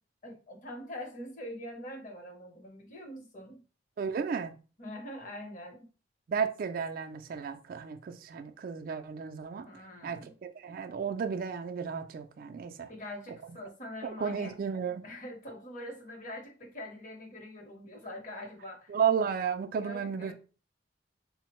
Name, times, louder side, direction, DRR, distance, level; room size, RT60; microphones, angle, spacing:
voice 1, 0.2-3.6 4.8-5.9 9.6-10.3 12.9-14.5 15.0-19.0 19.8-20.3, left 1 dB, 40° left, 0.8 m, -44 dB
voice 2, 4.0-4.5 6.3-9.7 10.0-12.9 14.0-15.0 18.9-20.3, right 6 dB, 45° right, 0.3 m, -33 dB
3.6 x 2.1 x 2.9 m
head